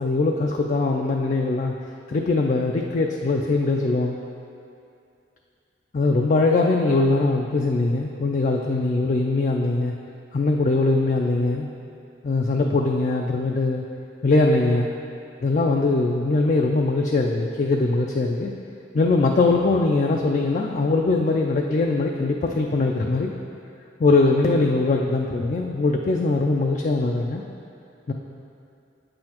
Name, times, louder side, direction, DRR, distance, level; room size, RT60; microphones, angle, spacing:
voice 1, 0.0-1.7 2.1-4.2 5.9-9.9 10.3-11.7 12.2-13.8 14.2-14.9 15.4-18.5 18.9-23.3 24.0-27.4 28.1-28.2, left 3 dB, 45° left, 1 dB, 0.4 m, -21 dB
8.3 x 7.6 x 2.9 m, 2.6 s
head